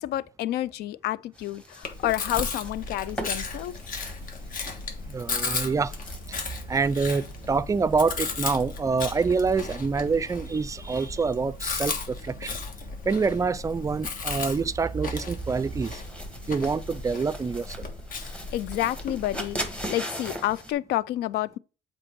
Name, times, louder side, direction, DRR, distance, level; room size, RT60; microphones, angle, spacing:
voice 1, 0.0-3.8 18.5-21.6, left 14 dB, 70° left, 0.4 m, -29 dB
sound 1, 1.3-20.7, equal, 5° left, 1.3 m, -43 dB
Chewing mastication, 1.8-19.9, left 4 dB, 55° left, 1.4 m, -35 dB
voice 2, 5.1-5.9 6.7-12.6 13.1-16.0 16.5-17.9, right 4 dB, 20° right, 0.3 m, -26 dB
7.7 x 4.4 x 4.6 m
cardioid pair, 110°, 17 cm